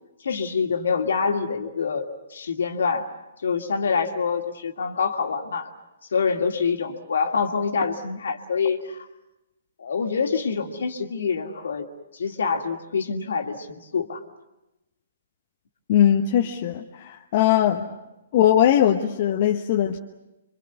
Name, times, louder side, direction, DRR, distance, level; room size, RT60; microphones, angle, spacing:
voice 1, 0.2-3.1 3.4-5.7 6.1-9.1 9.8-11.9 12.1-14.2 17.7-17.9, left 5 dB, 65° left, 5 dB, 2.3 m, -26 dB
voice 2, 15.9-17.9 18.3-20.0, left 10 dB, 45° left, 3 dB, 1.2 m, -20 dB
26.5 x 24.0 x 8.2 m, 0.96 s
figure-of-eight pair, 125°, 0 cm